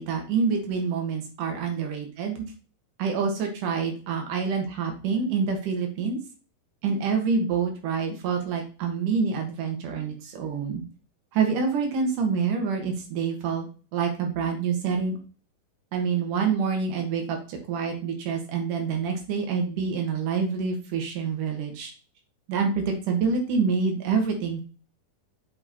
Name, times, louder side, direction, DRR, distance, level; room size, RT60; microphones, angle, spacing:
voice 1, 0.0-2.5 3.0-6.2 6.8-10.8 11.3-13.7 13.9-15.2 15.9-21.9 22.5-24.6, right 5 dB, 65° right, 3 dB, 2.9 m, -27 dB
7.2 x 5.3 x 2.9 m, 0.36 s
omnidirectional pair, 4.2 m